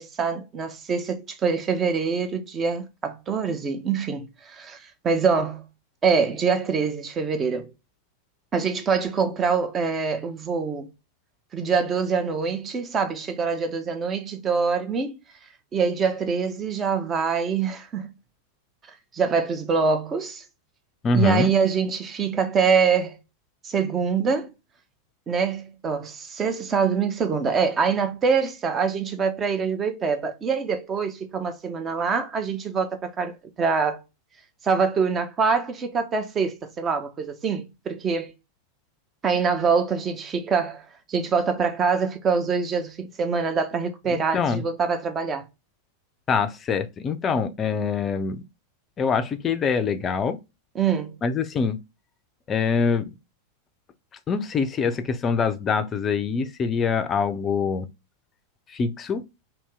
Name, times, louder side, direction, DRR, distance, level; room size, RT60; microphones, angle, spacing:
voice 1, 0.0-5.6 6.0-7.7 8.5-10.9 11.5-15.2 15.7-18.1 19.1-20.4 21.1-23.2 23.6-24.5 25.3-34.0 34.6-38.3 39.2-40.8 41.1-45.4 50.7-51.1, right 5 dB, 25° right, 0.6 m, -24 dB
voice 2, 21.0-21.5 44.1-44.6 46.3-48.4 49.0-50.4 51.2-51.8 52.5-53.1 54.3-57.9 58.7-59.2, left 5 dB, 25° left, 0.5 m, -24 dB
2.9 x 2.7 x 3.3 m
figure-of-eight pair, 90°, 0 cm